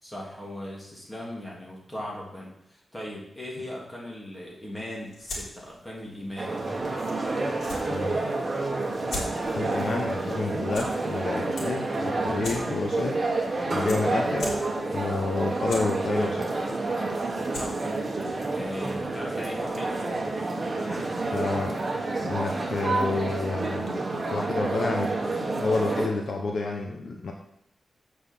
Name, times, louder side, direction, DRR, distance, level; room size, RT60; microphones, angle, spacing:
voice 1, 0.0-6.6 17.5-17.8 18.5-20.0 20.7-21.4, left 1 dB, 10° left, -3 dB, 3.3 m, -38 dB
sound 1, 4.9-19.3, left 2 dB, 90° left, 4.0 m, -43 dB
sound 2, 6.4-26.1, right 2 dB, 30° right, 1.7 m, -29 dB
voice 2, 7.9-8.2 9.5-13.2 13.7-14.6 14.9-16.5 21.3-21.8 22.2-27.3, left 3 dB, 60° left, 2 dB, 1.2 m, -29 dB
8.2 x 6.3 x 7.5 m, 0.77 s
wide cardioid pair, 120°, 0 cm